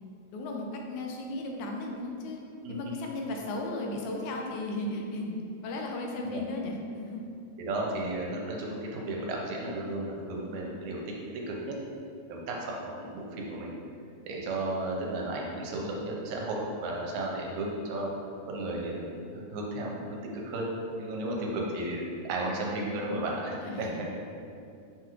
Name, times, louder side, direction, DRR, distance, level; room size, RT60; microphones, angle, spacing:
voice 1, 0.3-2.4 2.7-5.4 5.6-7.2 23.6-24.1, left 2 dB, 85° left, 1 dB, 2.0 m, -35 dB
voice 2, 2.6-3.0 6.2-6.4 7.6-11.8 12.3-13.8 14.2-18.1 18.5-20.7 21.0-23.9, right 1 dB, 85° right, -2 dB, 1.9 m, -34 dB
5.7 x 2.4 x 2.9 m, 2.5 s
omnidirectional pair, 3.4 m